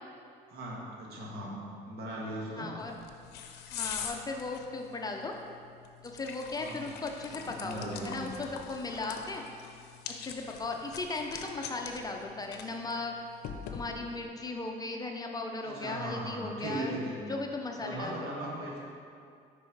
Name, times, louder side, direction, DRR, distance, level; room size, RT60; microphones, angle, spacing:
voice 1, 0.5-1.5 1.9-2.7 6.5-6.8 7.3-8.2 15.6-17.2 17.8-18.8, right 1 dB, 70° right, -4 dB, 1.6 m, -38 dB
voice 2, 2.5-3.0 3.7-5.3 6.0-9.5 10.2-13.1 13.7-17.0 17.3-18.3, left 3 dB, 20° left, 2 dB, 0.6 m, -37 dB
sound 1, 2.8-14.3, left 7 dB, 75° left, 0.6 m, -44 dB
6.1 x 4.6 x 4.6 m, 2.3 s
cardioid pair, 110°, 17 cm